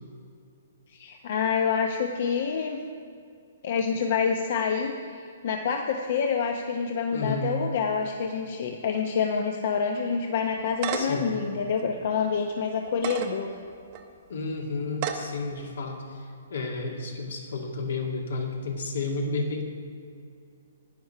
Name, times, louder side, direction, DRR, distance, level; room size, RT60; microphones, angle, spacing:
voice 1, 0.9-2.8 3.6-13.5, left 6 dB, 45° left, 4 dB, 0.7 m, -27 dB
voice 2, 7.1-7.5 10.9-11.3 14.3-19.6, left 3 dB, 75° left, 1 dB, 2.0 m, -32 dB
sound 1, 10.5-11.3 11.8-11.9 12.9-13.3 13.9-14.0 14.9-15.3, right 8 dB, 30° right, 0.8 m, -31 dB
10.5 x 9.3 x 5.6 m, 2.3 s
hypercardioid pair, 170°, 0 cm